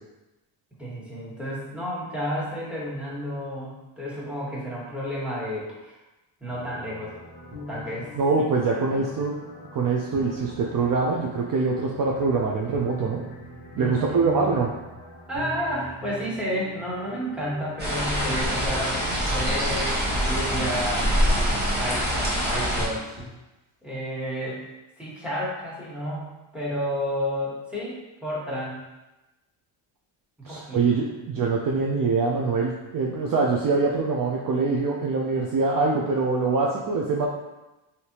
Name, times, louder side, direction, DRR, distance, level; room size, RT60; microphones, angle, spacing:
voice 1, 0.8-6.0 6.4-7.2 7.7-8.1 8.7-9.2 13.8-14.7 15.3-21.1 21.8-23.2 23.8-24.6 25.0-26.3 26.5-28.8 30.4-30.8, equal, ahead, -7 dB, 1.3 m, -31 dB
sound 1, 6.4-23.2, equal, 85° right, 1.3 m, -42 dB
voice 2, 8.2-9.4 9.7-13.2 13.8-14.7 30.4-37.3, right 4 dB, 45° right, -2 dB, 0.5 m, -24 dB
sound 2, 17.8-22.9, equal, 20° right, 1.1 m, -25 dB
sound 3, 18.7-20.1 21.5-21.6, equal, 60° right, 1.0 m, -40 dB
3.2 x 2.8 x 2.8 m, 1.0 s
cardioid pair, 75°, 48 cm